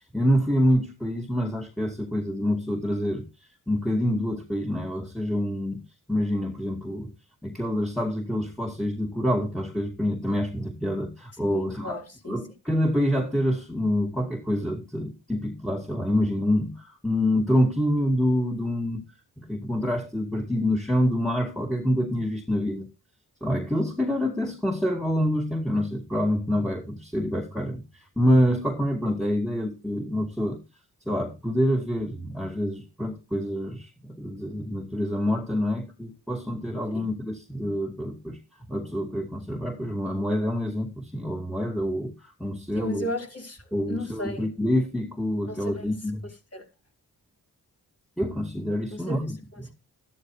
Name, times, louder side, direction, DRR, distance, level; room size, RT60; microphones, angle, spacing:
voice 1, 0.1-3.2 3.7-5.8 6.1-7.1 7.4-19.0 19.4-22.9 23.4-30.6 31.1-38.4 38.7-43.1 43.7-46.2 48.2-49.7, equal, ahead, 2.5 m, -26 dB
voice 2, 11.5-12.4 36.9-37.1 42.7-44.5 45.5-45.9 46.5-46.6 48.9-49.2 49.5-49.8, equal, 40° left, 4.9 m, -35 dB
13.5 x 12.0 x 3.2 m
cardioid pair, 60°, 37 cm